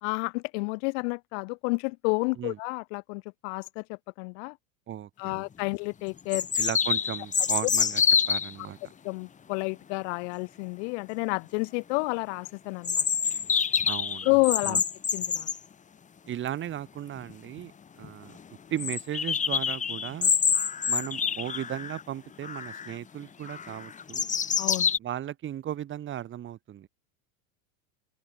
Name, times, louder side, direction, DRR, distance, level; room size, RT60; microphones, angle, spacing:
voice 1, 0.0-4.6 5.2-6.5 9.0-13.0 14.2-14.8 15.1-15.5 24.6-24.9, left 33 dB, 60° left, 2.4 m, -30 dB
voice 2, 4.9-5.5 6.6-8.0 8.3-8.8 13.9-14.3 14.6-14.8 16.3-17.7 18.0-18.4 18.7-20.3 20.9-24.3 25.0-26.9, right 11 dB, 30° right, 2.3 m, -36 dB
sound 1, 5.3-5.4 6.3-8.5 12.8-15.6 17.2-17.3 17.6-17.7 18.0-18.1 18.8-22.0 22.4-22.9 23.5-25.0, left 7 dB, 20° left, 2.1 m, -27 dB
supercardioid pair, 140°, 40 cm